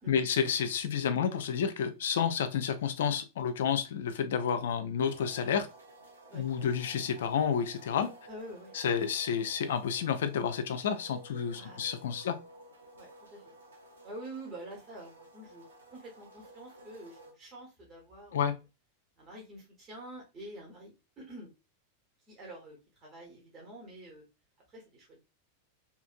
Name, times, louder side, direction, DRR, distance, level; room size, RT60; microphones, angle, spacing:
voice 1, 0.1-5.7 6.3-8.1 8.7-12.4 18.3-18.6, left 7 dB, 60° left, 0.4 m, -30 dB
sound 1, 5.0-17.3, right 1 dB, 70° right, 0.8 m, -54 dB
voice 2, 8.3-8.7 11.5-11.9 12.2-12.4 13.0-13.4 14.0-15.6 15.9-18.5 19.2-21.5 22.3-24.2 24.7-25.2, right 1 dB, 25° right, 1.1 m, -47 dB
2.8 x 2.5 x 2.4 m
figure-of-eight pair, 90°, 0 cm